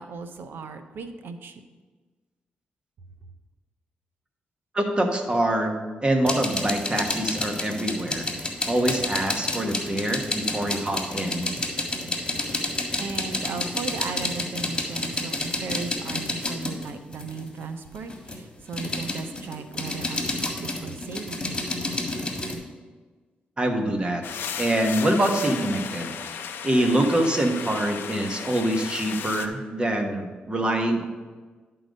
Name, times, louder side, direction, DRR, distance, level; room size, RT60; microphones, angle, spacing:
voice 1, 0.0-1.6 13.0-21.4, right 4 dB, 75° right, 8 dB, 0.7 m, -36 dB
voice 2, 4.7-8.4 8.6-11.5 23.6-26.1 26.4-31.0, right 1 dB, 25° right, 4 dB, 1.2 m, -25 dB
sound 1, 6.3-17.5 17.9-22.5, left 2 dB, 25° left, 1.7 m, -29 dB
sound 2, 24.2-29.5, left 7 dB, 80° left, 0.6 m, -35 dB
11.0 x 3.9 x 5.2 m, 1.3 s
cardioid pair, 70°, 4 cm